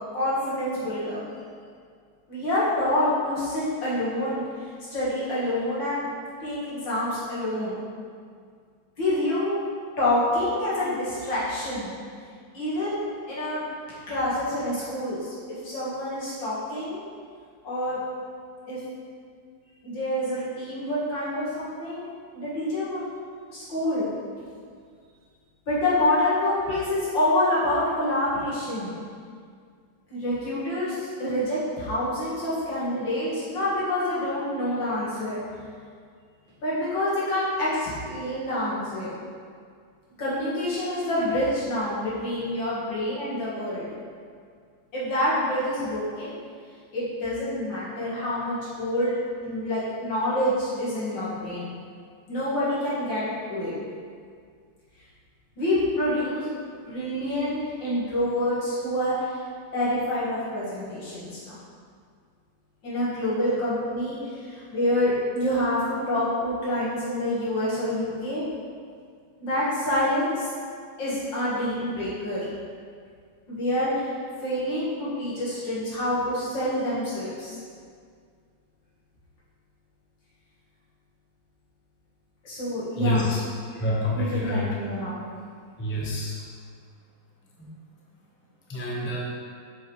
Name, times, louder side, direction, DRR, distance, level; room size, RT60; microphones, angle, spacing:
voice 1, 0.1-1.2 2.3-4.4 4.9-6.1 6.4-7.8 9.0-9.6 10.0-11.9 12.5-13.6 14.1-15.3 15.6-17.0 17.6-18.0 18.7-18.8 19.8-22.1 22.3-23.0 23.5-24.1 25.7-29.0 30.1-35.4 36.6-39.1 40.2-43.9 44.9-46.4 46.9-51.8 52.3-53.7 55.6-56.5 56.9-59.4 59.7-61.5 62.8-68.4 69.4-70.5 71.0-72.5 73.5-74.0 74.4-77.6 82.4-83.4 84.1-85.2, left 1 dB, 70° left, -10 dB, 2.6 m, -27 dB
voice 2, 83.0-83.4 83.7-84.6 85.8-86.4 87.6-87.7 88.7-89.2, left 1 dB, 15° left, -5 dB, 0.5 m, -27 dB
7.3 x 5.3 x 3.2 m, 2.1 s
omnidirectional pair, 2.1 m